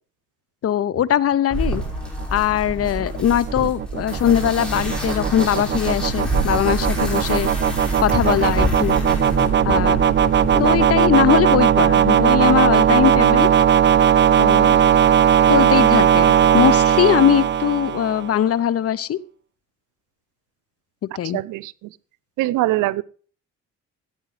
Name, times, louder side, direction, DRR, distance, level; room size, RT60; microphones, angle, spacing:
voice 1, 0.6-1.8 2.3-7.5 8.0-9.0 9.7-10.0 10.6-13.5 14.4-15.0 15.5-19.2 21.2-21.4, left 10 dB, 50° left, 20 dB, 0.7 m, -20 dB
sound 1, 1.5-10.9, equal, 5° left, 5.5 m, -27 dB
sound 2, 2.2-18.4, right 9 dB, 35° right, 0.6 m, -18 dB
voice 2, 21.3-21.9 22.4-23.0, right 17 dB, 90° right, 20 dB, 0.5 m, -22 dB
15.5 x 8.9 x 3.3 m, 0.41 s
cardioid pair, 90°, 30 cm